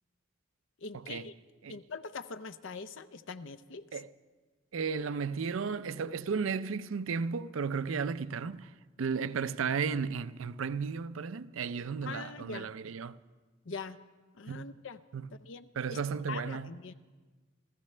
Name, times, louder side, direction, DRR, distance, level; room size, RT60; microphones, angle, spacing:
voice 1, 0.8-1.3 1.7-4.0 12.0-12.7 13.6-14.0 14.4-15.0 15.4-16.0 16.3-16.9, left 4 dB, 65° left, 0.6 m, -43 dB
voice 2, 4.7-8.7 9.0-13.2 14.5-14.7 15.1-15.3 15.8-16.7, right 5 dB, 80° right, 0.5 m, -34 dB
27.5 x 14.5 x 3.3 m
head